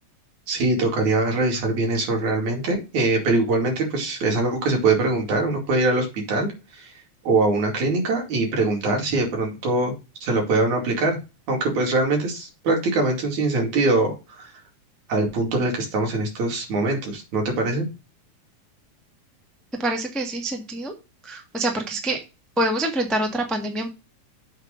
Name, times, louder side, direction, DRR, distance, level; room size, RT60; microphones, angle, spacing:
voice 1, 0.5-6.9 7.3-9.9 10.2-11.2 11.5-14.5 15.1-17.9, right 2 dB, 75° right, 1 dB, 3.9 m, -23 dB
voice 2, 19.8-20.9 21.2-22.2 22.6-23.9, right 1 dB, ahead, 3 dB, 0.3 m, -26 dB
8.0 x 3.7 x 6.6 m, 0.28 s
omnidirectional pair, 3.4 m